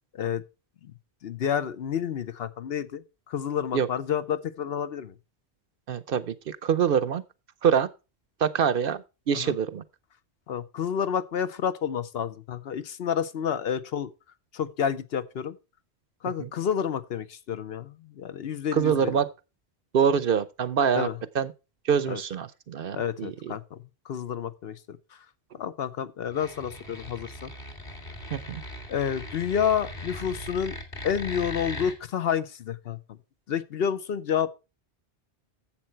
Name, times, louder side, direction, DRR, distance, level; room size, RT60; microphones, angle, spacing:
voice 1, 1.2-5.1 9.3-9.5 10.5-14.1 14.5-15.6 16.2-19.2 20.9-21.1 22.1-22.2 22.9-23.8 24.1-25.0 25.5-27.5 28.9-30.8 31.0-33.0 33.5-34.5, left 8 dB, 65° left, 0.9 m, -29 dB
voice 2, 5.9-7.2 7.6-7.9 8.4-9.8 16.4-16.5 18.7-19.3 19.9-21.1 21.3-21.5 21.9-23.5 28.3-28.6, right 7 dB, 60° right, 0.8 m, -25 dB
sound 1, 26.3-32.0, left 1 dB, 45° left, 2.2 m, -39 dB
10.5 x 7.6 x 4.4 m
omnidirectional pair, 1.2 m